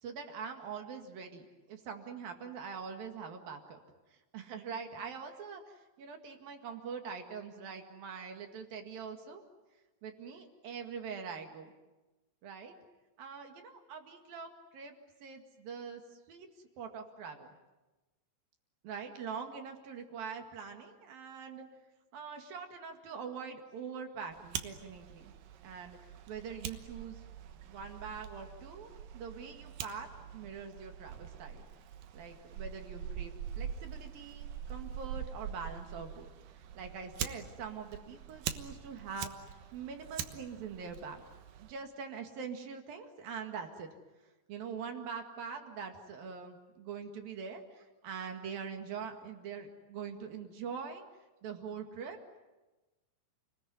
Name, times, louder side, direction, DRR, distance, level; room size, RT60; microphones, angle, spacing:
voice 1, 0.0-3.8 4.1-9.4 10.0-11.7 12.4-12.7 13.2-16.5 16.8-17.5 18.8-21.7 22.1-25.3 25.6-26.0 26.3-27.2 27.7-31.7 32.1-36.3 36.5-41.2 41.6-43.9 44.5-51.1 51.4-52.2, right 6 dB, 55° right, 4 dB, 3.2 m, -44 dB
Fire, 24.3-41.7, right 8 dB, 75° right, 2.1 m, -44 dB
30.0 x 20.5 x 9.5 m, 1.1 s
omnidirectional pair, 5.8 m